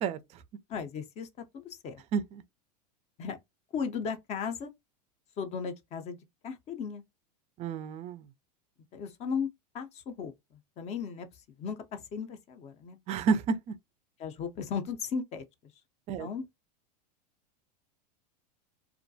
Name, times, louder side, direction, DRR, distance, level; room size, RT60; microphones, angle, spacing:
voice 1, 0.7-1.3 1.5-2.0 3.2-3.4 3.7-4.7 5.4-6.2 6.4-7.0 8.9-9.5 9.7-10.3 10.8-11.3 11.6-13.0 14.2-15.4 16.2-16.4, left 6 dB, 30° left, 0.5 m, -36 dB
voice 2, 2.1-2.4 7.6-8.2 13.1-13.7 16.1-16.3, right 5 dB, 30° right, 0.3 m, -30 dB
2.3 x 2.1 x 2.6 m
hypercardioid pair, 110°, 21 cm